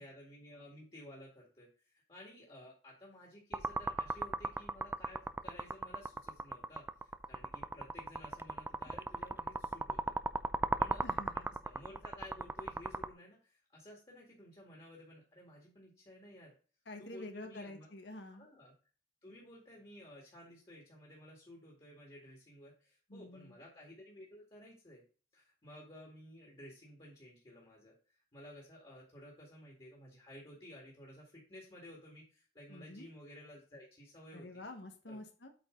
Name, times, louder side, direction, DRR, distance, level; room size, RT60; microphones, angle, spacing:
voice 1, 0.0-10.2 10.8-11.0 11.3-16.5 17.0-17.9 18.4-18.7 19.2-25.1 25.3-34.6 35.1-35.2, left 1 dB, 30° left, -3 dB, 2.1 m, -54 dB
sound 1, 3.5-13.1, right 3 dB, 15° right, 0.4 m, -37 dB
voice 2, 11.0-11.5 16.9-18.5 23.1-23.5 32.7-33.1 34.3-35.5, left 1 dB, 90° left, 5 dB, 1.5 m, -48 dB
8.4 x 4.7 x 3.8 m, 0.38 s
head